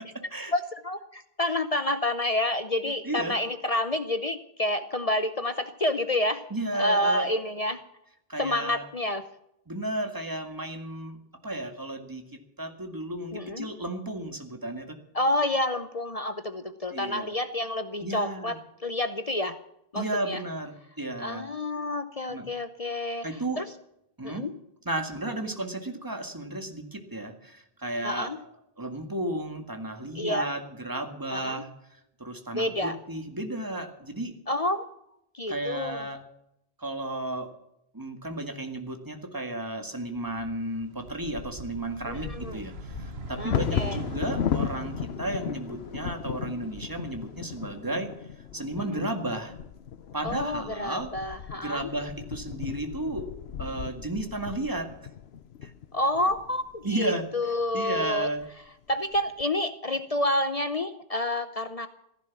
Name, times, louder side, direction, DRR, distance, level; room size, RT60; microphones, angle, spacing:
voice 1, 0.5-6.4 6.7-7.8 8.4-9.3 13.3-13.7 15.1-18.6 18.8-19.6 19.9-20.4 21.2-23.3 23.6-23.7 24.2-24.5 28.0-28.4 30.1-30.5 31.3-31.6 32.5-33.0 34.5-34.8 35.3-36.1 42.1-42.6 43.4-44.0 48.8-49.1 50.2-51.9 55.9-58.3 58.9-61.9, left 1 dB, 40° left, 10 dB, 0.8 m, -29 dB
voice 2, 2.9-3.4 6.5-7.3 8.3-8.8 9.7-11.2 11.4-15.0 16.9-17.3 18.0-18.6 20.0-21.5 22.3-22.5 23.2-23.6 24.2-24.5 24.9-28.3 28.8-34.3 35.5-36.2 36.8-37.5 37.9-48.1 48.5-49.5 50.1-51.1 51.5-53.3 53.6-54.9 55.6-55.7 56.8-57.3 57.7-58.5, right 1 dB, 20° right, 6 dB, 1.9 m, -33 dB
sound 1, 40.0-48.1 48.5-49.7, right 4 dB, 75° right, 1.4 m, -43 dB
Bird vocalization bird call bird song / Wind / Thunder, 41.1-57.0 57.6-57.7 58.0-58.4 58.9-59.4, left 8 dB, 75° left, 1.0 m, -36 dB
15.5 x 11.0 x 7.2 m, 0.79 s
omnidirectional pair, 1.1 m